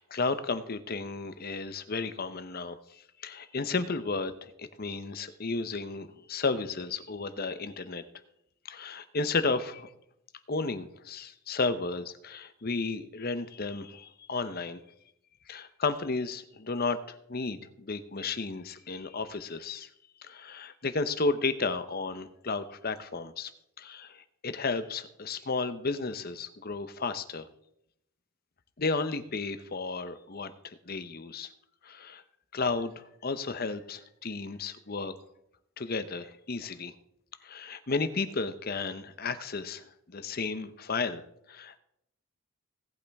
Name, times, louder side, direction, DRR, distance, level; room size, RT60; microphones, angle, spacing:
voice 1, 0.0-8.0 8.6-9.9 10.5-14.8 15.5-19.9 20.2-23.5 23.8-27.5 28.8-31.5 31.8-32.2 32.5-35.1 35.8-36.9 37.4-41.8, left 3 dB, 45° left, 11 dB, 0.8 m, -33 dB
17.5 x 8.5 x 3.5 m, 0.77 s
head